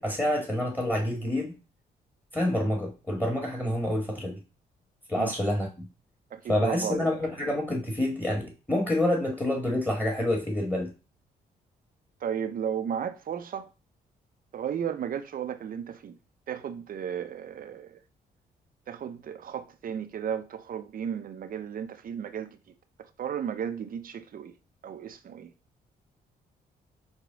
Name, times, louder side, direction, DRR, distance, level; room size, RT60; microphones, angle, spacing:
voice 1, 0.0-1.5 2.3-4.4 5.1-5.9 6.5-10.9, left 1 dB, 10° left, 1.6 m, -27 dB
voice 2, 6.3-7.1 12.2-13.7 14.5-16.2 16.5-18.0 18.9-22.5 23.2-24.5 24.8-25.5, right 8 dB, 50° right, 0.6 m, -34 dB
4.8 x 2.2 x 3.9 m
supercardioid pair, 60°, 18 cm